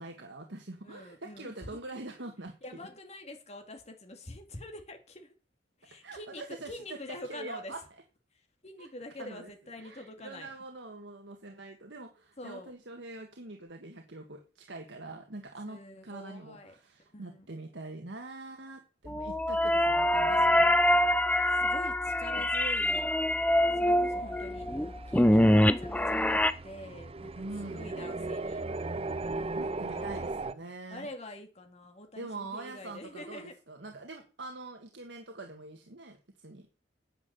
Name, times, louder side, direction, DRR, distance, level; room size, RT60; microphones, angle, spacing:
voice 1, 0.0-2.9 6.0-7.0 7.3-7.8 8.8-8.9 9.2-9.5 9.8-20.7 21.1-21.2 27.3-27.9 29.5-31.1 32.2-36.7, right 2 dB, 75° right, 1.6 m, -44 dB
voice 2, 0.8-1.8 2.6-5.3 5.8-7.7 8.6-10.5 12.4-12.7 15.7-16.7 17.1-17.5 20.3-20.8 21.5-23.1 23.7-24.7 25.1-28.6 29.3-30.4 30.9-33.5, left 1 dB, 40° left, 2.3 m, -46 dB
sound 1, 19.1-26.5, left 1 dB, 10° left, 0.6 m, -25 dB
sound 2, 23.4-30.5, right 3 dB, 35° right, 0.6 m, -38 dB
9.7 x 8.6 x 6.9 m
head